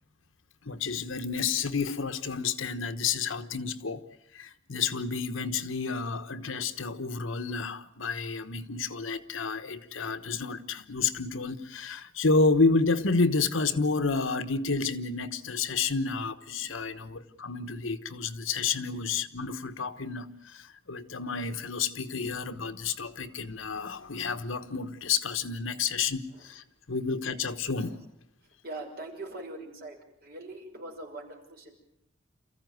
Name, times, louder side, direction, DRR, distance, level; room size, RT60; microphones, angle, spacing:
voice 1, 0.6-4.0 4.3-28.0, left 4 dB, 70° left, 1.2 m, -30 dB
voice 2, 28.6-30.0 30.2-31.7, right 2 dB, 50° right, 5.9 m, -42 dB
28.0 x 15.0 x 9.4 m
head